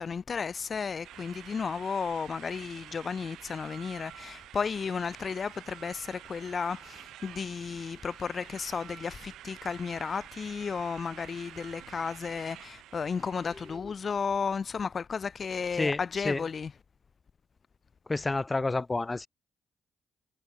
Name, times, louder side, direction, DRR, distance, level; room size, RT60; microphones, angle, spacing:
voice 1, 0.0-16.8, left 5 dB, 40° left, 0.5 m, -33 dB
sound 1, 1.0-13.8, right 13 dB, 85° right, 3.2 m, -49 dB
voice 2, 18.1-19.3, left 3 dB, 20° left, 1.2 m, -29 dB
cardioid pair, 90°, 0 cm